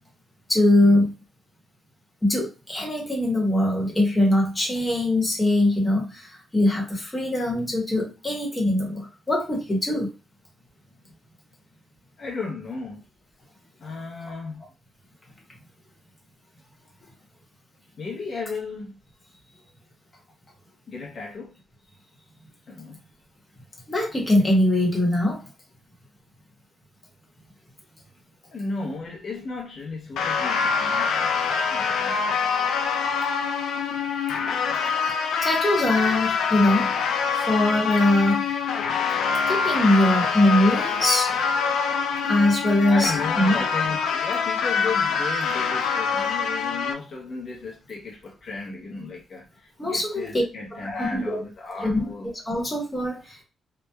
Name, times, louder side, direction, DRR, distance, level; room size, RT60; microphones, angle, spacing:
voice 1, 0.5-1.1 2.2-10.1 23.9-25.4 35.4-36.9 37.4-38.4 39.5-41.3 42.2-43.6 49.8-50.4 50.7-51.4 51.8-53.4, left 1 dB, 20° left, 1.0 m, -22 dB
voice 2, 12.2-13.1 13.8-14.6 18.0-19.0 20.9-21.5 22.7-23.0 28.5-31.3 31.7-32.4 42.8-52.3, left 4 dB, 55° left, 0.7 m, -34 dB
sound 1, 30.2-46.9, left 6 dB, 90° left, 0.3 m, -25 dB
2.8 x 2.2 x 2.2 m
cardioid pair, 120°, 0 cm